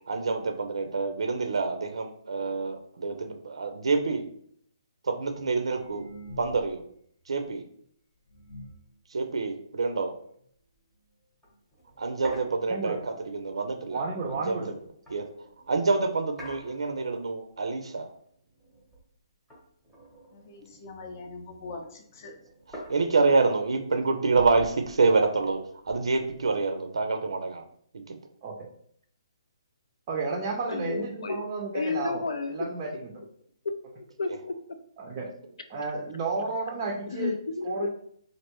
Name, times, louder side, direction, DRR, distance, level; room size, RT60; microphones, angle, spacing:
voice 1, 0.1-4.3 5.0-6.1 6.4-6.8 7.3-7.6 9.1-10.1 12.0-14.7 15.1-15.3 15.7-18.1 22.9-27.6 28.1-28.2, right 4 dB, 90° right, 0.5 m, -27 dB
sound 1, 5.2-6.9 7.2-7.3 7.8-7.9 8.3-8.9 9.7-9.8 10.0-10.1 10.4-10.7 11.5-11.6 11.9-12.0 12.6-12.7 13.0-13.1, equal, 65° left, 0.9 m, -46 dB
sound 2, 10.5-10.7 11.1-11.2 11.4-15.8 16.4-17.5 17.8-19.2 19.5-21.2 21.5-26.7, right 1 dB, ahead, 0.8 m, -48 dB
voice 2, 13.9-14.7 28.4-28.5 30.1-32.2 32.5-33.1 35.0-35.3 35.7-37.3 37.6-37.9, right 4 dB, 25° right, 0.4 m, -32 dB
voice 3, 20.3-22.3, left 3 dB, 35° left, 0.5 m, -42 dB
voice 4, 30.7-31.5 31.7-32.7 33.6-34.6 37.1-37.9, left 4 dB, 85° left, 0.5 m, -32 dB
3.2 x 2.5 x 2.9 m
hypercardioid pair, 170°, 3 cm